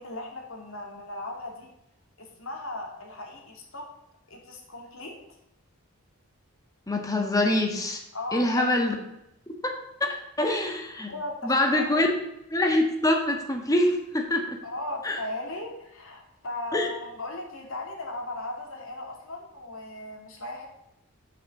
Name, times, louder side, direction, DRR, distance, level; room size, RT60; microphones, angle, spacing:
voice 1, 0.0-1.7 2.2-3.9 4.3-5.1 8.1-8.7 11.1-12.0 14.6-20.7, left 2 dB, 65° left, 1 dB, 2.4 m, -37 dB
voice 2, 6.9-8.0 8.3-8.9 9.6-11.1 11.4-12.1 12.5-14.6 15.0-15.2 16.7-16.9, left 1 dB, 15° left, 3 dB, 1.5 m, -25 dB
7.7 x 5.9 x 7.1 m, 0.82 s
head